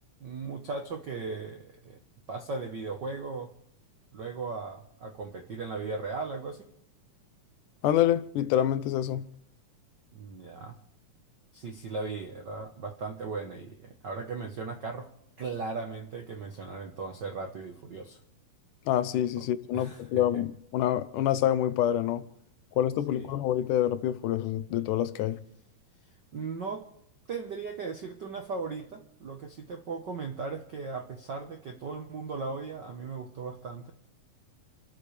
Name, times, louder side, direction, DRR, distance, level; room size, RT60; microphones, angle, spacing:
voice 1, 0.2-2.0 2.3-3.5 4.1-6.6 10.1-10.8 11.5-15.1 15.4-18.2 19.7-20.2 23.1-23.3 26.3-26.9 27.3-33.9, right 4 dB, 75° right, 1.0 m, -37 dB
voice 2, 7.8-9.3 18.9-22.3 22.7-25.4, left 11 dB, 75° left, 2.1 m, -27 dB
29.0 x 13.5 x 3.4 m
omnidirectional pair, 3.9 m